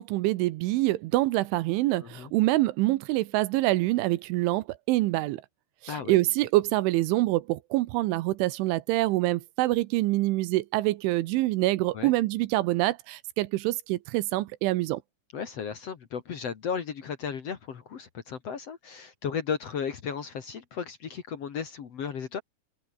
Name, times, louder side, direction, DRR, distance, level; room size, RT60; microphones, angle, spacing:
voice 1, 0.0-5.4 5.8-15.0, right 18 dB, 80° right, 3.1 m, -26 dB
voice 2, 2.0-2.3 5.9-6.2 11.9-12.1 15.3-22.4, left 7 dB, 65° left, 1.6 m, -35 dB
omnidirectional pair, 5.8 m